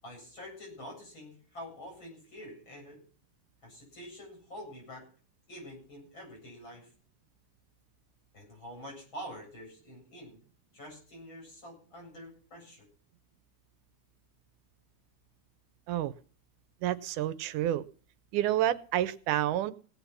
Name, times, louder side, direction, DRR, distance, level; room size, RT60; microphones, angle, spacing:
voice 1, 0.0-3.0 3.6-5.1 5.5-6.9 8.3-10.4 10.7-12.9, equal, 40° left, 0 dB, 8.8 m, -46 dB
voice 2, 16.8-17.8 18.3-19.7, right 12 dB, 90° right, 14 dB, 2.3 m, -29 dB
18.5 x 8.2 x 5.8 m, 0.42 s
omnidirectional pair, 3.5 m